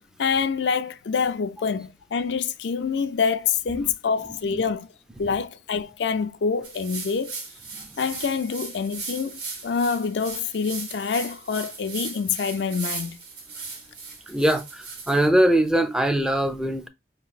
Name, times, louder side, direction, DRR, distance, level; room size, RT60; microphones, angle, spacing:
voice 1, 0.0-4.9 5.2-7.4 8.0-13.2, left 5 dB, 85° left, 0.4 m, -26 dB
voice 2, 4.3-4.6 7.8-7.9 14.3-16.9, right 1 dB, 5° right, 0.4 m, -22 dB
sound 1, 6.6-15.3, right 4 dB, 75° right, 1.5 m, -37 dB
5.2 x 2.9 x 2.3 m
head